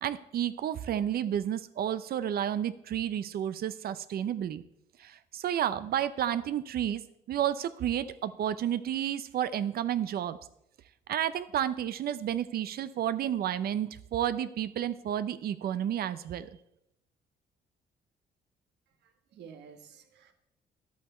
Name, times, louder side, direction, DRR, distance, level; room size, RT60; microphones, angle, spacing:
voice 1, 0.0-4.6 5.0-7.0 7.3-10.4 11.1-16.5, right 10 dB, 65° right, 14 dB, 0.6 m, -31 dB
voice 2, 19.0-20.3, right 7 dB, 80° right, 6 dB, 1.4 m, -51 dB
11.0 x 8.4 x 4.4 m, 0.80 s
cardioid pair, 95°, 17 cm